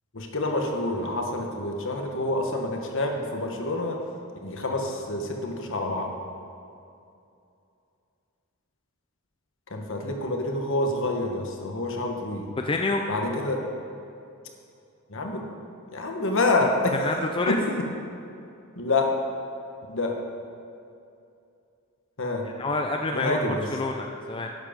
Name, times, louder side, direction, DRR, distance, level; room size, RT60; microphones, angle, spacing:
voice 1, 0.1-4.0 4.4-6.1 9.7-12.4 13.1-13.6 15.1-15.4 15.9-17.0 17.5-17.6 18.8-19.1 19.9-20.1 22.2-22.5 23.1-23.6, left 2 dB, 60° left, 2 dB, 1.3 m, -27 dB
voice 2, 12.6-13.0 16.6-17.6 22.4-24.5, left 3 dB, 25° left, 3 dB, 0.4 m, -28 dB
11.0 x 7.6 x 5.1 m, 2.6 s
head